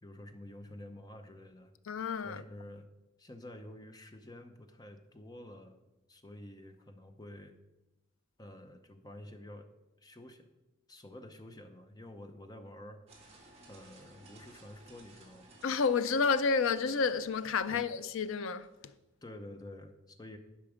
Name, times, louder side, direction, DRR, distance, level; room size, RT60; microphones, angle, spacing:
voice 1, 0.0-1.7 2.2-2.9 3.2-5.8 6.1-7.6 8.4-9.7 10.0-10.5 10.9-13.0 13.7-15.6 17.7-17.9 19.2-20.4, left 1 dB, 20° left, 0.6 m, -49 dB
voice 2, 1.9-2.4 15.6-18.7, left 5 dB, 75° left, 0.4 m, -30 dB
sound 1, 13.1-18.9, right 2 dB, 30° right, 1.9 m, -59 dB
10.5 x 5.9 x 5.0 m
head